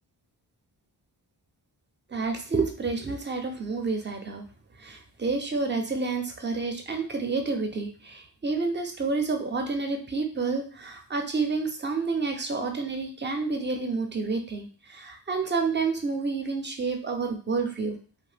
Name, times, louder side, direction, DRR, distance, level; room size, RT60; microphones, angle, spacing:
voice 1, 2.1-4.4 4.8-18.0, right 4 dB, 25° right, 4 dB, 0.5 m, -29 dB
2.6 x 2.1 x 3.3 m, 0.41 s
wide cardioid pair, 100°, 44 cm